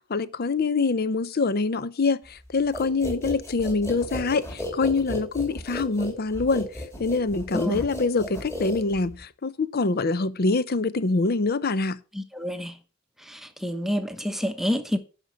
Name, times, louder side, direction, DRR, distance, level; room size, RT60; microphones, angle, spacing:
voice 1, 0.1-6.7 7.0-12.0, left 3 dB, 50° left, 0.6 m, -25 dB
sound 1, 2.7-9.2, left 1 dB, 15° left, 2.8 m, -34 dB
voice 2, 7.5-7.8 12.1-12.8 13.3-15.0, equal, ahead, 0.9 m, -28 dB
10.5 x 5.3 x 5.9 m
head